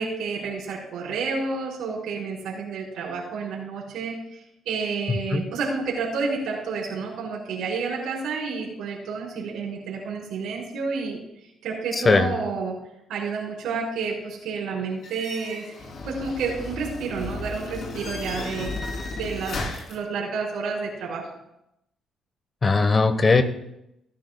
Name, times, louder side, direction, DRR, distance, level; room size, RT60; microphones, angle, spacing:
voice 1, 0.0-11.2 11.6-12.8 13.1-15.7 16.0-18.8 19.1-19.6 19.9-21.3, right 4 dB, 85° right, -4 dB, 4.5 m, -30 dB
voice 2, 11.9-12.3 22.6-23.4, left 3 dB, 35° left, 9 dB, 1.0 m, -19 dB
sound 1, 15.0-20.0, left 2 dB, 60° left, 3.1 m, -34 dB
18.0 x 11.0 x 2.3 m, 0.83 s
cardioid pair, 90°, 0 cm